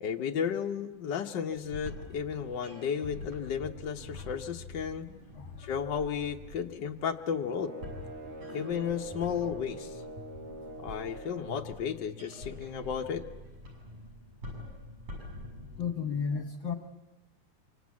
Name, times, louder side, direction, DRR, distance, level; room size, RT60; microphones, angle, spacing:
voice 1, 0.0-5.1 5.6-7.7 8.5-10.0 10.8-13.2, left 7 dB, 80° left, 3 dB, 0.9 m, -33 dB
sound 1, 1.5-15.9, left 2 dB, 70° right, 9.3 m, -46 dB
sound 2, 7.4-11.6, right 2 dB, 90° right, 5.1 m, -44 dB
voice 2, 15.8-16.7, left 6 dB, 55° left, 6 dB, 1.4 m, -33 dB
26.0 x 25.5 x 8.4 m, 1.1 s
omnidirectional pair, 3.5 m